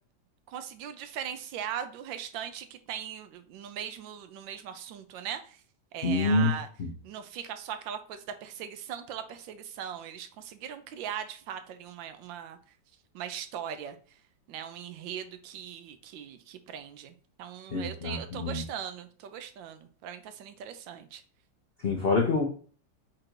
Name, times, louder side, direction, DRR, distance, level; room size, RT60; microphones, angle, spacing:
voice 1, 0.5-5.6 5.9-6.7 7.0-12.6 13.1-14.0 14.5-21.2, right 9 dB, 85° right, 9 dB, 1.3 m, -39 dB
voice 2, 6.0-6.5 6.8-6.9 17.7-18.6 21.8-22.5, left 3 dB, 70° left, 0 dB, 0.5 m, -26 dB
4.6 x 2.5 x 4.5 m, 0.42 s
omnidirectional pair, 2.0 m